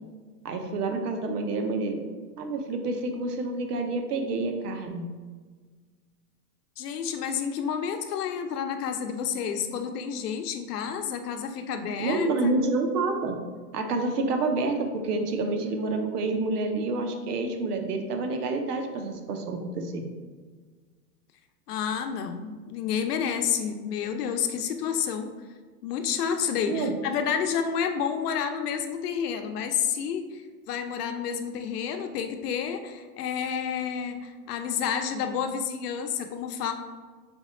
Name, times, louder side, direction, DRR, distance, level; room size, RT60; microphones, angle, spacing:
voice 1, 0.4-2.0 2.4-5.1 12.0-13.4 13.7-20.0 26.7-26.9, right 3 dB, 90° right, 4 dB, 0.8 m, -28 dB
voice 2, 6.8-12.5 21.7-25.3 25.8-30.4 30.7-36.7, left 7 dB, 90° left, 6 dB, 0.7 m, -30 dB
3.5 x 3.2 x 4.1 m, 1.4 s
supercardioid pair, 160°, 45 cm